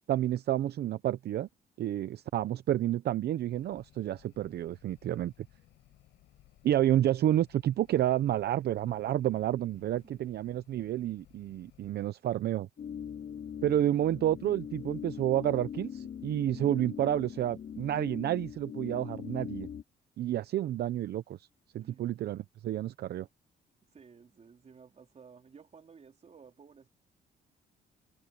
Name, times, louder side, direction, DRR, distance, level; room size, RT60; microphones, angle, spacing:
voice 1, 0.0-1.5 1.8-5.3 6.6-12.7 13.6-19.7 20.2-21.4 21.7-23.3, right 12 dB, 65° right, 0.7 m, -30 dB
sound 1, 3.5-11.9, left 14 dB, 85° left, 6.6 m, -62 dB
sound 2, 12.8-19.8, left 8 dB, 55° left, 3.0 m, -41 dB
voice 2, 23.9-26.9, right 6 dB, 35° right, 3.8 m, -55 dB
cardioid pair, 100°, 18 cm